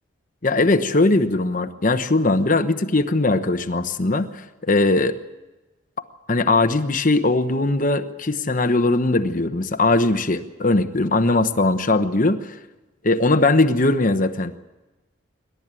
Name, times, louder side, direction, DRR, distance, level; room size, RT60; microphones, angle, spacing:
voice 1, 0.4-4.3 4.6-5.1 6.3-12.5 13.0-14.6, left 2 dB, 40° left, 9 dB, 1.0 m, -20 dB
26.5 x 12.5 x 9.0 m, 1.1 s
head